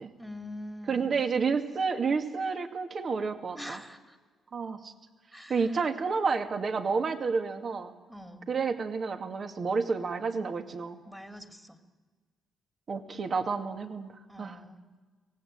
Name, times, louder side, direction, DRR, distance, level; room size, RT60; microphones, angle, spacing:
voice 1, 0.2-1.1 3.5-4.2 5.3-5.8 8.1-8.5 11.0-11.8 14.3-14.8, left 1 dB, 5° right, 6 dB, 2.3 m, -44 dB
voice 2, 0.9-3.8 4.5-4.9 5.5-7.9 8.5-11.0 12.9-14.1 14.4-14.6, right 5 dB, 45° right, 7 dB, 2.1 m, -30 dB
25.0 x 17.5 x 8.9 m, 1.4 s
cardioid pair, 90°, 0 cm